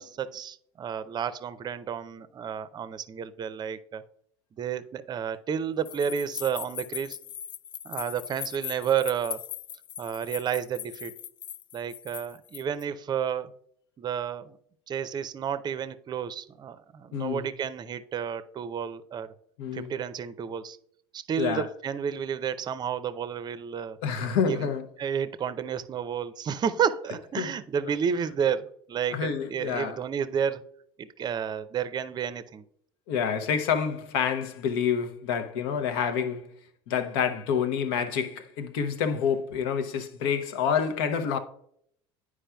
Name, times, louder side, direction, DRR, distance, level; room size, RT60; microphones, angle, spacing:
voice 1, 0.0-4.0 4.6-7.2 7.8-9.4 10.0-11.1 11.7-13.5 14.0-14.6 14.9-19.3 19.7-20.8 21.1-24.0 24.4-24.7 25.0-30.6 31.0-32.6, right 8 dB, 35° right, 0.5 m, -31 dB
sound 1, 5.9-12.8, left 10 dB, 40° left, 0.4 m, -39 dB
voice 2, 17.1-17.5 19.6-19.9 21.4-21.7 24.0-24.8 27.4-27.5 29.1-30.0 33.1-36.5 36.9-41.4, left 7 dB, 75° left, 0.8 m, -28 dB
9.9 x 4.8 x 2.3 m
hypercardioid pair, 85°, 13 cm